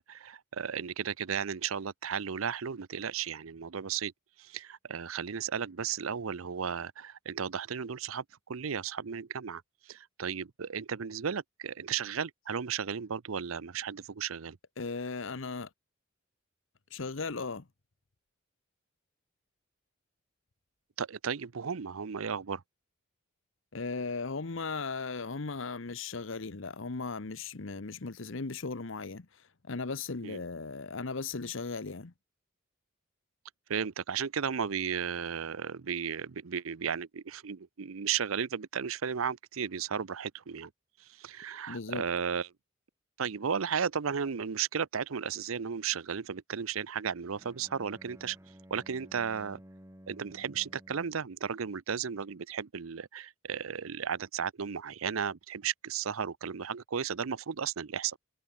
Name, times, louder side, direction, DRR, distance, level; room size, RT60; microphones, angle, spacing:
voice 1, 0.0-4.1 4.4-14.6 21.0-22.6 30.2-30.4 33.7-40.7 41.0-42.5 43.2-48.4 48.7-49.6 50.1-58.2, right 7 dB, 85° right, 0.7 m, -34 dB
voice 2, 14.8-15.7 16.9-17.7 23.7-32.1 41.7-42.1, left 4 dB, 65° left, 1.0 m, -37 dB
Bowed string instrument, 47.3-51.3, equal, 15° right, 4.1 m, -54 dB
head